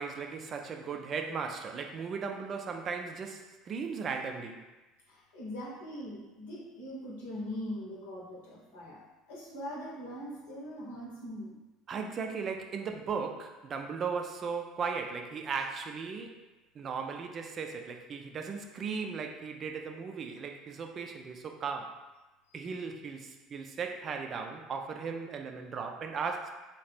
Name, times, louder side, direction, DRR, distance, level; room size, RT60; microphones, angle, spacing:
voice 1, 0.0-4.6 11.9-16.4 16.7-22.0 22.5-26.5, right 5 dB, 45° right, 4 dB, 0.4 m, -37 dB
voice 2, 5.1-9.0 9.3-11.6, equal, 85° left, -5 dB, 1.0 m, -41 dB
2.7 x 2.4 x 3.4 m, 1.1 s
hypercardioid pair, 80°, 0 cm